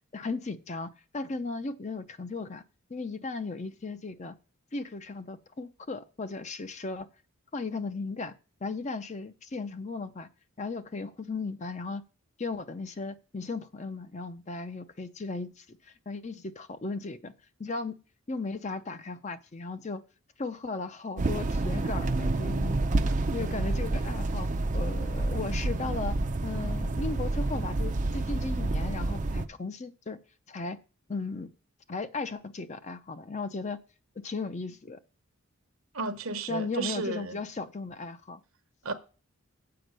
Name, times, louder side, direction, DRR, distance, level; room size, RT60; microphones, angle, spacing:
voice 1, 0.1-2.6 2.9-4.3 4.7-7.1 7.5-8.3 8.6-10.3 10.6-12.0 12.4-17.3 17.6-18.0 18.3-20.0 20.4-22.9 23.3-26.1 26.4-30.2 30.5-30.8 31.1-31.5 31.9-33.8 34.2-35.0 36.5-38.4, left 3 dB, 30° left, 0.5 m, -36 dB
sound 1, 21.2-29.4, right 2 dB, 35° right, 0.5 m, -29 dB
voice 2, 35.9-37.4 38.8-38.9, right 3 dB, 70° right, 1.0 m, -33 dB
7.7 x 5.2 x 6.6 m
head